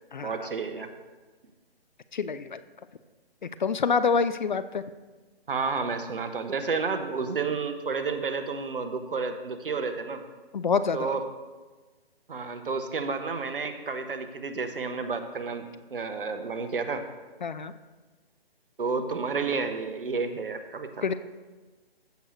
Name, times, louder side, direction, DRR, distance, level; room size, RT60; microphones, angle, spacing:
voice 1, 0.2-0.9 5.5-10.2 10.9-11.2 12.3-17.0 18.8-21.0, right 4 dB, 60° right, 8 dB, 1.0 m, -31 dB
voice 2, 2.1-2.6 3.4-4.8 10.5-11.2 17.4-17.7 21.0-21.1, left 5 dB, 50° left, 13 dB, 0.4 m, -26 dB
15.0 x 6.3 x 3.1 m, 1.3 s
figure-of-eight pair, 145°, 31 cm